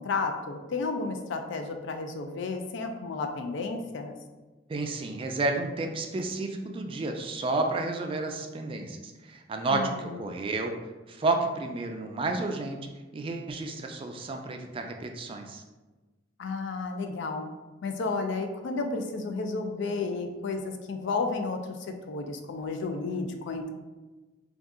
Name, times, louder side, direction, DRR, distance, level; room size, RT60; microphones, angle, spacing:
voice 1, 0.0-4.1 9.7-10.3 16.4-17.4 17.8-21.8 22.1-23.7, left 3 dB, 70° left, 6 dB, 0.4 m, -32 dB
voice 2, 4.7-10.7 11.1-12.8 13.1-15.6, right 3 dB, 30° right, 3 dB, 0.3 m, -31 dB
2.6 x 2.3 x 3.6 m, 1.2 s
head